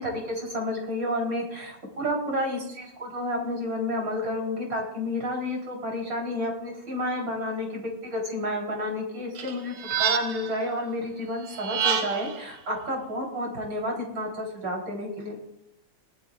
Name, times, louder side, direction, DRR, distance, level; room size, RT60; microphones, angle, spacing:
voice 1, 0.0-15.4, left 1 dB, 55° right, -1 dB, 4.5 m, -30 dB
sound 1, 9.4-10.6 11.5-12.4, right 8 dB, 75° right, 2.1 m, -28 dB
20.0 x 13.0 x 2.5 m, 0.80 s
omnidirectional pair, 2.4 m